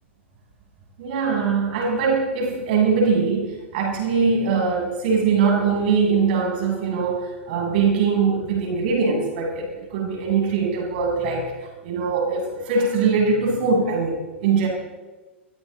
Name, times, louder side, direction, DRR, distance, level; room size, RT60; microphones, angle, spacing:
voice 1, 1.0-14.7, right 5 dB, 50° right, -1 dB, 7.9 m, -22 dB
29.0 x 23.5 x 4.1 m, 1.3 s
figure-of-eight pair, 100°, 7 cm